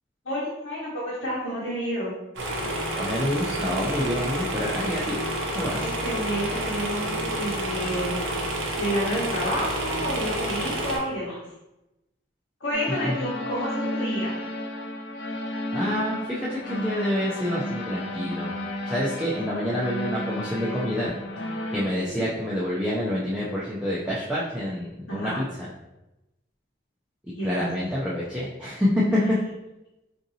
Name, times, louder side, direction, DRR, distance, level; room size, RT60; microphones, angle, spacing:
voice 1, 0.2-2.1 5.8-8.2 8.7-11.4 12.6-14.4 21.8-22.3 25.1-25.4 27.3-27.7, equal, 80° left, -8 dB, 1.0 m, -30 dB
sound 1, 2.4-11.0, right 1 dB, 80° right, 0.7 m, -29 dB
voice 2, 3.0-5.2 5.5-5.8 13.0-13.1 15.7-18.5 18.8-21.1 21.7-25.4 27.4-29.2, left 1 dB, 5° right, -8 dB, 0.4 m, -27 dB
sound 2, 12.7-21.8, left 1 dB, 60° left, 0.4 m, -32 dB
3.8 x 2.6 x 2.7 m, 0.95 s
head